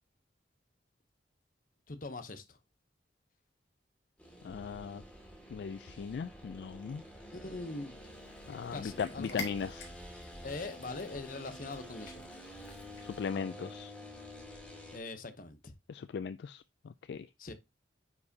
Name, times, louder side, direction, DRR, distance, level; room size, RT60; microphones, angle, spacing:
voice 1, 1.9-2.6 7.3-8.0 8.7-9.5 10.4-12.2 14.9-15.7 17.4-17.5, left 3 dB, 45° left, 0.8 m, -42 dB
sound 1, 4.2-15.0, equal, 5° left, 2.0 m, -49 dB
voice 2, 4.4-5.0 5.5-7.0 8.5-9.9 13.0-13.9 15.9-17.3, left 6 dB, 65° left, 0.3 m, -38 dB
Cat, 8.1-13.3, left 3 dB, 85° left, 1.9 m, -48 dB
9.6 x 4.7 x 2.7 m
head